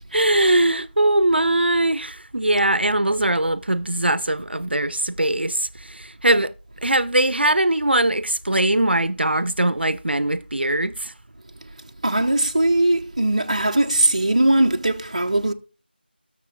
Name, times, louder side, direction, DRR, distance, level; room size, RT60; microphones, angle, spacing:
voice 1, 0.1-6.5 6.8-11.1, right 1 dB, 75° right, 0.6 m, -21 dB
voice 2, 12.0-15.5, right 1 dB, 40° right, 0.7 m, -20 dB
18.5 x 6.7 x 2.4 m
figure-of-eight pair, 175°, 6 cm